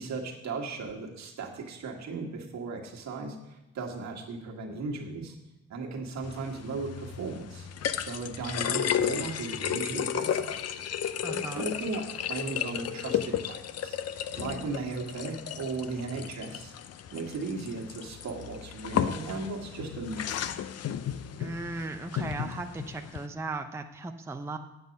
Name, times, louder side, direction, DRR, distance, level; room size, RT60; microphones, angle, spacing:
voice 1, 0.0-5.4 5.7-7.7 8.0-10.5 11.3-14.0 14.4-16.7 17.1-20.5, right 3 dB, 65° right, 0 dB, 1.8 m, -36 dB
sound 1, 6.2-23.3, left 9 dB, 55° left, 0.6 m, -34 dB
voice 2, 11.2-11.7 21.4-24.6, right 3 dB, 10° right, 5 dB, 0.5 m, -37 dB
8.3 x 7.9 x 5.3 m, 0.97 s
cardioid pair, 90°, 30 cm